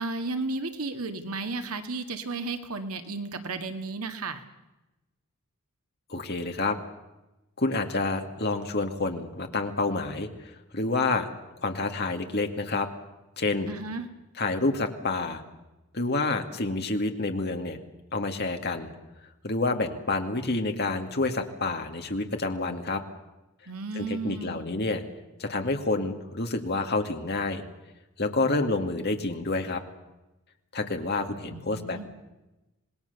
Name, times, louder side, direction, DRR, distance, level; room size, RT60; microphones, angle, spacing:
voice 1, 0.0-4.4 13.7-14.1 23.7-24.8 31.5-32.1, right 3 dB, 80° right, 7 dB, 1.9 m, -33 dB
voice 2, 6.1-6.8 7.6-11.3 11.6-12.9 13.4-13.7 14.4-15.4 15.9-17.8 18.1-18.9 19.4-23.0 23.9-25.0 25.4-27.6 28.2-29.8 30.7-32.1, left 3 dB, 45° left, 5 dB, 2.3 m, -28 dB
27.0 x 19.5 x 6.9 m, 1.0 s
head